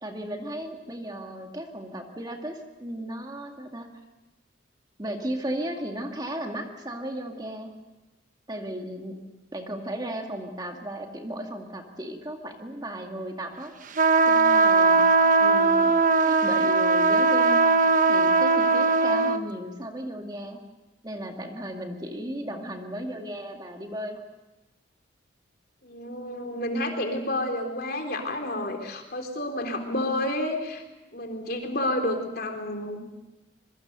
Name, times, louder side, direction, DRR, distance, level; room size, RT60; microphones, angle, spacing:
voice 1, 0.0-3.9 5.0-7.7 8.5-9.2 9.5-13.7 14.3-15.1 15.4-15.9 16.2-17.7 18.1-20.6 21.0-24.2, right 1 dB, 20° right, 3 dB, 2.0 m, -35 dB
sound 1, 14.0-19.4, right 3 dB, 40° right, 1.1 m, -20 dB
voice 2, 25.8-30.8 31.1-33.0, left 1 dB, 50° left, 4 dB, 3.7 m, -30 dB
26.0 x 23.0 x 6.8 m, 1.1 s
head